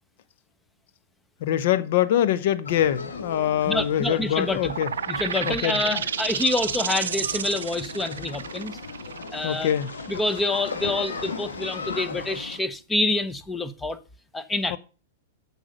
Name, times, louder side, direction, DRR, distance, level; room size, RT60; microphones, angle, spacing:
voice 1, 1.4-4.9 5.4-6.0 9.4-9.9 14.7-14.8, left 11 dB, 60° left, 0.9 m, -24 dB
sound 1, 2.7-12.6, left 4 dB, 90° left, 2.1 m, -37 dB
voice 2, 3.7-4.7 5.1-8.8 9.3-9.7 10.1-14.0 14.3-14.8, left 2 dB, 10° left, 0.9 m, -27 dB
sound 2, 4.6-12.0, right 8 dB, 80° right, 0.4 m, -32 dB
8.7 x 6.7 x 6.5 m
hypercardioid pair, 115°, 0 cm